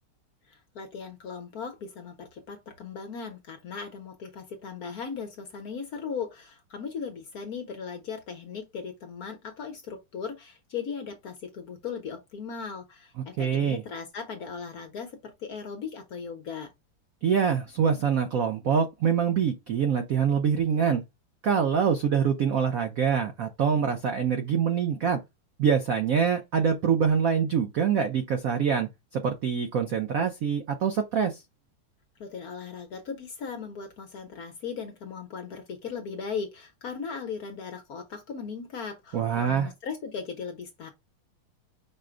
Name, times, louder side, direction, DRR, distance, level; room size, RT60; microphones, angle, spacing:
voice 1, 0.5-16.7 32.2-40.9, left 6 dB, 60° left, 1.0 m, -38 dB
voice 2, 13.4-13.8 17.2-21.0 21.4-25.2 25.6-31.4 39.1-39.7, right 7 dB, 85° right, 0.7 m, -25 dB
5.0 x 2.1 x 4.9 m
omnidirectional pair, 2.3 m